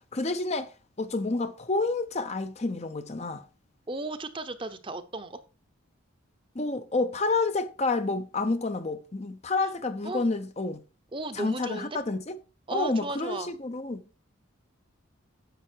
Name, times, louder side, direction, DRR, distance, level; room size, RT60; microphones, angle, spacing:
voice 1, 0.1-0.7 1.0-3.4 6.5-10.8 11.3-12.4 12.7-14.0, left 3 dB, 30° left, 0.7 m, -29 dB
voice 2, 3.9-5.4 9.6-9.7 10.0-10.2 11.1-12.0 12.7-13.5, right 2 dB, 25° right, 0.8 m, -35 dB
10.5 x 7.5 x 4.5 m
head